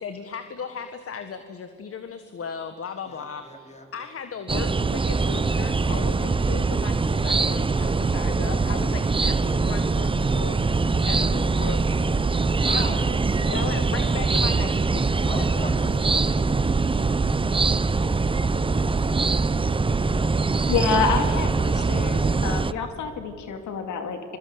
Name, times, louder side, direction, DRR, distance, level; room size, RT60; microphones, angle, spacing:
voice 1, 0.0-12.1 12.7-12.8 13.5-15.4, left 6 dB, 50° left, 9 dB, 1.7 m, -37 dB
voice 2, 3.1-4.1 7.8-8.2 10.9-12.1 12.6-14.2 15.2-16.5 17.0-17.2 17.7-20.7, left 2 dB, 20° left, 4 dB, 4.5 m, -41 dB
sound 1, 4.5-22.7, right 4 dB, 15° right, 0.7 m, -23 dB
voice 3, 20.4-24.4, left 5 dB, 75° left, 7 dB, 2.6 m, -28 dB
26.5 x 22.5 x 8.1 m, 2.3 s
cardioid pair, 90°, 30 cm